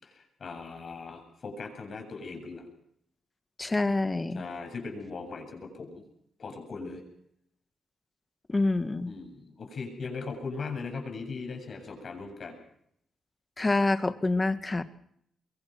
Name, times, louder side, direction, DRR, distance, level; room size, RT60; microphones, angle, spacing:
voice 1, 0.0-2.7 4.3-6.0 6.4-7.0 9.1-12.6, left 4 dB, 50° left, 5 dB, 7.9 m, -39 dB
voice 2, 3.6-4.4 8.5-9.1 13.6-14.8, left 2 dB, 20° left, 10 dB, 1.9 m, -26 dB
23.5 x 23.5 x 6.1 m, 0.71 s
cardioid pair, 95°, 0 cm